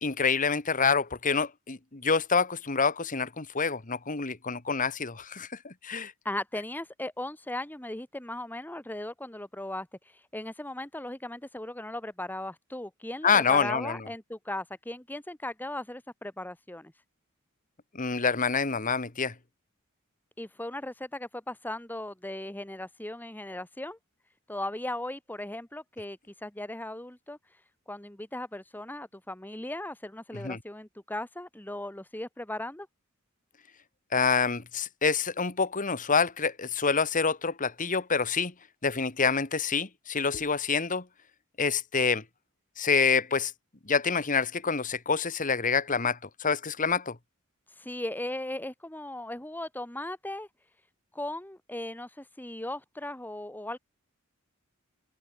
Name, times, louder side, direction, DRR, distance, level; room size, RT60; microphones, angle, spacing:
voice 1, 0.0-6.1 13.2-14.0 17.9-19.3 30.3-30.6 34.1-38.5 38.8-41.0 41.6-42.2 42.8-43.5 43.9-47.2, left 5 dB, 40° left, 1.7 m, -27 dB
voice 2, 6.2-9.9 10.3-16.9 20.4-24.0 24.5-27.4 27.9-32.9 47.8-50.5 51.1-53.8, left 1 dB, 10° left, 1.6 m, -37 dB
head